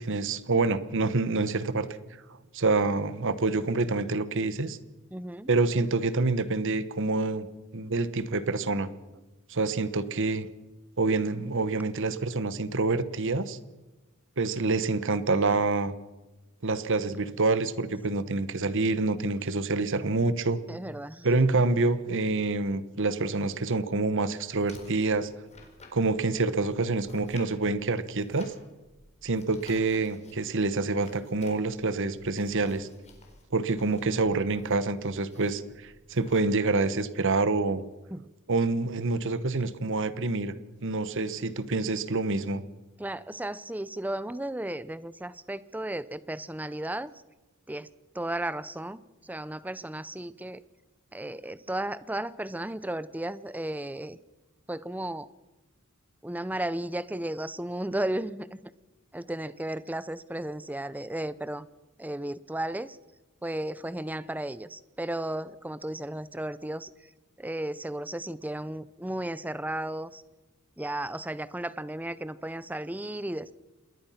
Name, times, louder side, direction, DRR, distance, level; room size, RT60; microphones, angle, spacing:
voice 1, 0.0-1.9 2.5-4.8 5.5-7.5 7.7-8.9 9.5-10.5 11.0-13.6 14.4-15.9 16.6-20.6 21.2-25.3 25.9-28.5 29.2-32.9 33.5-37.8 38.5-40.5 40.8-42.6, right 3 dB, 60° right, 14 dB, 1.2 m, -27 dB
voice 2, 5.1-5.5 20.7-21.3 38.1-38.3 43.0-47.1 47.7-47.9 48.1-50.6 51.1-54.2 54.7-55.3 56.2-58.6 59.1-61.7 62.0-63.0 63.4-66.9 67.4-70.2 70.8-73.6, right 1 dB, 10° right, 16 dB, 0.6 m, -34 dB
sound 1, 24.5-36.4, left 2 dB, 30° left, 4.6 m, -54 dB
27.5 x 20.5 x 5.8 m, 1.1 s
head